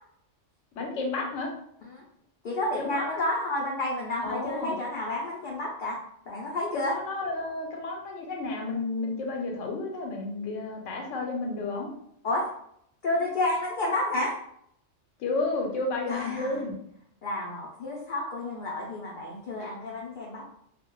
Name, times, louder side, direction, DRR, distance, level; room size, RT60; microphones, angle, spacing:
voice 1, 0.8-1.5 2.8-3.2 4.2-4.7 6.7-11.9 15.2-16.7 19.6-19.7, left 3 dB, 80° left, 1 dB, 1.0 m, -32 dB
voice 2, 2.4-6.0 6.3-6.9 12.2-12.4 13.0-14.4 16.1-16.6 17.2-20.5, left 2 dB, 60° left, -3 dB, 0.5 m, -30 dB
2.3 x 2.1 x 2.9 m, 0.71 s
omnidirectional pair, 1.3 m